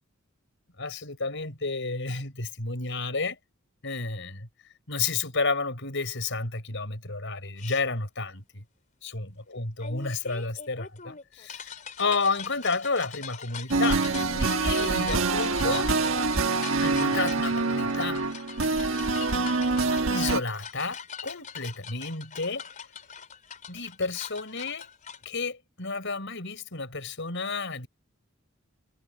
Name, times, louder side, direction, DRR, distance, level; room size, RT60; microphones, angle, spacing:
voice 1, 0.8-3.4 3.8-4.5 4.9-8.6 9.0-11.7 12.0-15.9 16.8-18.2 20.1-22.7 23.7-24.9 25.2-27.9, left 4 dB, 60° left, 6.1 m, -31 dB
sound 1, 7.6-7.8 9.8-25.3, left 7 dB, 35° left, 3.9 m, -43 dB
sound 2, 13.7-20.4, right 3 dB, 65° right, 1.4 m, -25 dB
head